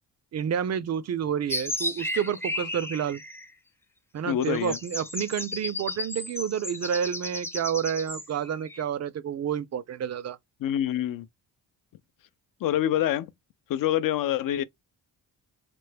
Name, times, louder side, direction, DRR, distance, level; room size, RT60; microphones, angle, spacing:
voice 1, 0.3-3.2 4.1-10.4, right 8 dB, 40° right, 0.5 m, -29 dB
sound 1, 1.5-3.5 4.4-8.8, left 2 dB, 5° left, 0.5 m, -34 dB
voice 2, 4.3-4.8 10.6-11.3 12.6-13.3 13.7-14.6, left 11 dB, 55° left, 0.5 m, -26 dB
3.4 x 2.1 x 3.3 m
cardioid pair, 70°, 39 cm